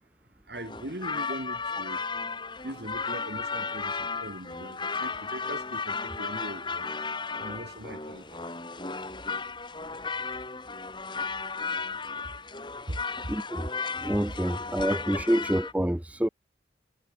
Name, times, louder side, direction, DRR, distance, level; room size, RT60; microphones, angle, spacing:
sound 1, 0.5-15.7, left 4 dB, 25° left, 4.4 m, -34 dB
voice 1, 0.5-2.0 2.6-6.9 7.4-8.4 12.9-13.0 13.2-13.3, right 1 dB, 60° right, 3.7 m, -40 dB
voice 2, 13.3-13.7 14.0-16.3, equal, 10° right, 0.5 m, -27 dB
head